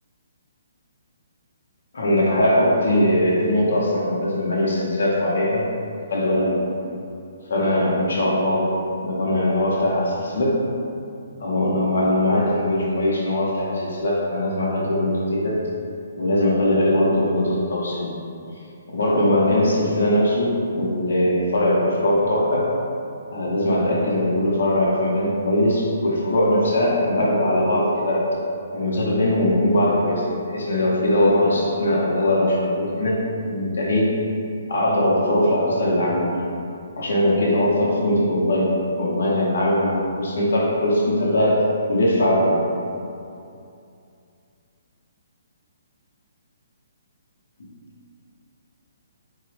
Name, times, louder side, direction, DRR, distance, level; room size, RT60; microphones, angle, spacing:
voice 1, 1.9-5.7 6.1-6.6 7.5-8.7 9.0-10.6 11.4-15.6 16.2-18.1 18.9-22.7 23.3-28.3 28.7-33.2 33.4-34.2 34.7-36.3 37.0-41.6 41.9-42.6 47.6-47.7, left 1 dB, 75° left, -5 dB, 0.7 m, -20 dB
3.6 x 2.0 x 3.0 m, 2.5 s
hypercardioid pair, 160°, 0 cm